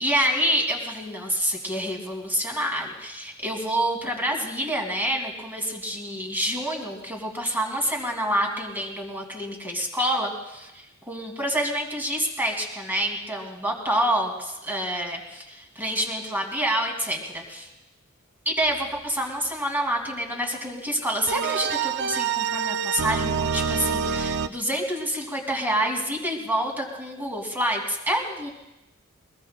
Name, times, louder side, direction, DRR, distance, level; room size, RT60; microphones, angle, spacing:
voice 1, 0.0-17.7 18.5-28.5, equal, 10° right, 1 dB, 2.4 m, -27 dB
sound 1, 21.3-24.5, right 6 dB, 55° right, 0.4 m, -26 dB
22.5 x 21.5 x 2.2 m, 0.94 s
head